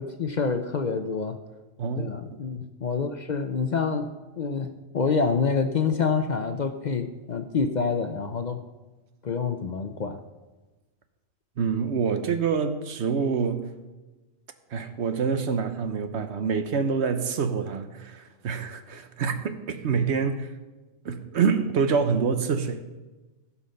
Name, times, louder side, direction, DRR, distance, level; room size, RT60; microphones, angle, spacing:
voice 1, 0.0-1.4 2.0-8.6 9.2-10.2, left 5 dB, 50° left, 0.6 m, -27 dB
voice 2, 1.8-2.1 11.6-13.7 14.7-20.5 21.0-22.8, right 5 dB, 70° right, 1.1 m, -26 dB
15.5 x 5.8 x 5.3 m
omnidirectional pair, 1.2 m